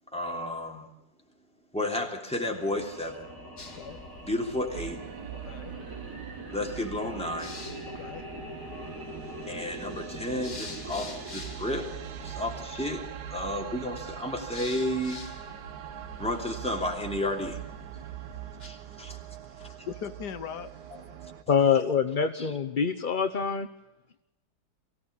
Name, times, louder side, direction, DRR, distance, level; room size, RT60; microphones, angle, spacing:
voice 1, 0.1-0.8 1.7-3.3 4.2-5.0 6.5-7.6 9.4-11.9 12.2-15.2 16.2-17.6 18.6-19.2 20.9-21.0 22.4-22.5, left 1 dB, 5° left, 1 dB, 3.1 m, -32 dB
sound 1, 2.3-12.7, right 1 dB, 50° right, 5.8 m, -43 dB
sound 2, 3.6-18.7, left 3 dB, 55° left, 2.7 m, -48 dB
sound 3, 4.7-21.4, right 11 dB, 85° right, 1.7 m, -42 dB
voice 2, 5.4-5.7 7.9-8.3 19.6-20.7, left 8 dB, 75° left, 11 dB, 1.5 m, -39 dB
voice 3, 21.5-23.7, left 6 dB, 40° left, 6 dB, 0.8 m, -25 dB
24.0 x 16.0 x 7.1 m, 0.94 s
omnidirectional pair, 1.8 m